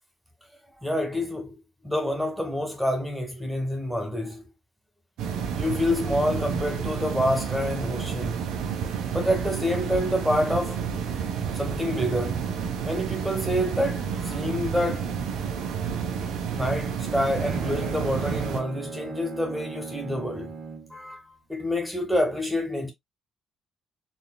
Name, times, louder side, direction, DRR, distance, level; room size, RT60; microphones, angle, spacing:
voice 1, 0.8-1.5 1.8-4.4 5.5-8.4 9.1-11.0 11.6-12.4 12.9-15.1 16.5-20.5 20.9-21.2 21.5-22.9, left 1 dB, ahead, 2.1 m, -27 dB
sound 1, 5.2-18.6, right 7 dB, 85° right, 1.2 m, -30 dB
Bowed string instrument, 16.9-21.0, right 5 dB, 55° right, 2.1 m, -37 dB
4.9 x 3.6 x 2.3 m
cardioid pair, 90°, 0 cm